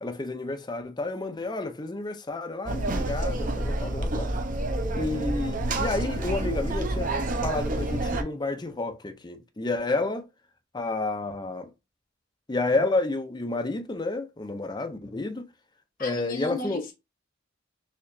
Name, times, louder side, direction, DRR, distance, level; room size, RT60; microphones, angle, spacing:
voice 1, 0.0-4.3 4.9-7.1 7.4-10.3 10.7-11.7 12.5-15.5 16.0-16.8, left 2 dB, 20° left, 0.5 m, -30 dB
sound 1, 2.7-8.2, right 2 dB, 45° right, 0.6 m, -28 dB
voice 2, 16.0-16.9, left 3 dB, 50° left, 1.1 m, -34 dB
4.2 x 2.8 x 2.6 m
head